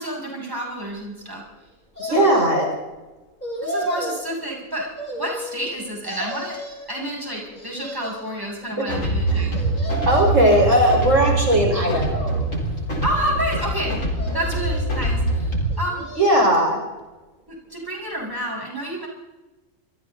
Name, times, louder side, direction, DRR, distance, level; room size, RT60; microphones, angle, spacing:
voice 1, 0.0-1.4 2.0-2.3 3.6-6.6 6.9-9.7 13.0-14.0 14.3-16.1 17.5-19.1, right 1 dB, 15° right, -2 dB, 7.0 m, -29 dB
sound 1, 2.0-2.8 3.4-4.2 5.0-5.7 6.0-6.9 7.5-8.4 9.5-10.5 11.0-11.7 12.3-13.1 14.1-14.9 15.7-16.6 17.0-17.1, right 1 dB, 35° left, 7.1 m, -33 dB
voice 2, 2.1-2.8 8.8-8.9 9.3-9.5 9.8-12.3 16.2-16.8, equal, 70° right, 0 dB, 5.3 m, -18 dB
sound 2, 8.9-15.7, right 2 dB, 75° left, 4.5 m, -24 dB
28.0 x 25.0 x 4.0 m, 1.1 s
omnidirectional pair, 1.4 m